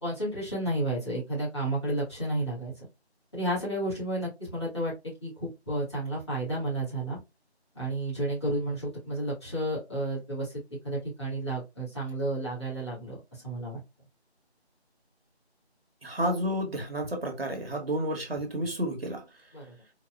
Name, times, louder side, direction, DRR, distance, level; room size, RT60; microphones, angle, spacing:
voice 1, 0.0-2.8 3.3-4.9 5.2-7.2 7.7-13.8 19.5-19.8, right 1 dB, 25° left, 1.7 m, -32 dB
voice 2, 16.0-19.2, equal, 60° right, 1.1 m, -31 dB
4.0 x 2.3 x 2.3 m
figure-of-eight pair, 175°, 33 cm